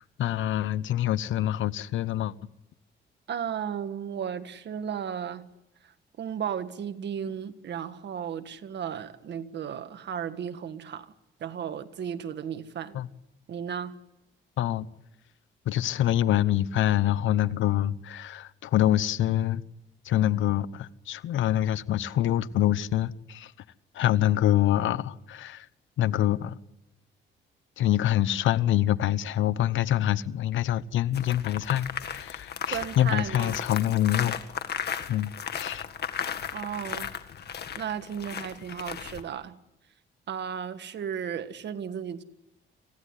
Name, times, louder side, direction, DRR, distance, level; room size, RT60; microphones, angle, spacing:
voice 1, 0.0-2.3 12.9-13.1 14.6-14.9 15.7-19.6 20.0-23.5 23.9-25.7 26.0-26.6 27.8-34.4 35.1-35.8, left 12 dB, 75° left, 1.0 m, -25 dB
voice 2, 3.3-5.5 5.8-11.1 11.4-13.0 13.5-14.0 32.7-33.6 36.5-37.1 37.7-39.6 40.3-42.2, right 8 dB, 60° right, 1.7 m, -34 dB
sound 1, 31.1-39.2, left 8 dB, 55° left, 1.9 m, -35 dB
26.5 x 16.0 x 10.0 m
cardioid pair, 90°, 20 cm